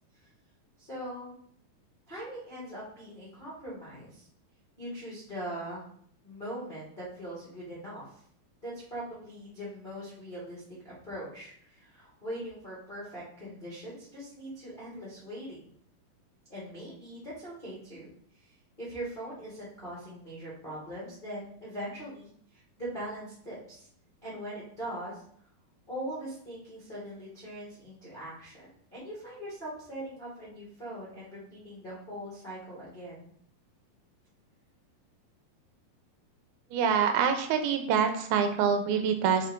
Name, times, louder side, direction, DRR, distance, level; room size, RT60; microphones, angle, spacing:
voice 1, 0.8-1.3 2.1-4.3 4.8-5.8 6.2-8.0 8.6-15.6 16.5-18.1 18.8-22.3 22.8-23.8 24.2-25.2 25.9-33.3, right 1 dB, 35° left, -9 dB, 0.7 m, -41 dB
voice 2, 36.7-39.5, right 7 dB, 85° right, 6 dB, 2.6 m, -26 dB
7.2 x 3.7 x 3.6 m, 0.63 s
omnidirectional pair, 4.3 m